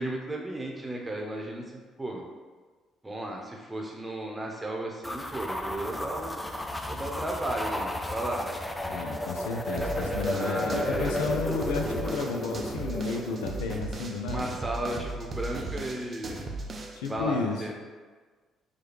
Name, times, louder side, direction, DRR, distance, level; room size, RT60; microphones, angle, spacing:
voice 1, 0.0-1.6 2.0-2.2 3.0-6.3 6.9-8.5 10.3-11.3 14.3-16.4 17.1-17.7, right 1 dB, 15° right, 0 dB, 0.8 m, -34 dB
sound 1, 5.0-13.6, left 1 dB, 10° left, 0.4 m, -33 dB
voice 2, 8.9-14.5 16.9-17.7, left 4 dB, 85° left, 3 dB, 0.3 m, -32 dB
sound 2, 9.8-17.1, right 2 dB, 45° right, 0.5 m, -37 dB
4.8 x 2.3 x 3.1 m, 1.4 s
hypercardioid pair, 55°, 0 cm